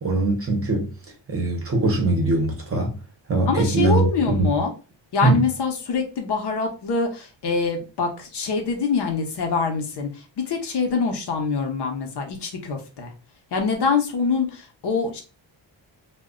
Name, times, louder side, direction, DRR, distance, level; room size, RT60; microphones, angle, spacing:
voice 1, 0.0-0.9 1.3-3.0 3.3-4.5 5.2-5.4, right 2 dB, 30° right, 0.7 m, -21 dB
voice 2, 3.5-4.7 5.1-13.1 13.5-15.2, left 4 dB, 60° left, 0.7 m, -25 dB
2.2 x 2.1 x 3.5 m
wide cardioid pair, 175°, 46 cm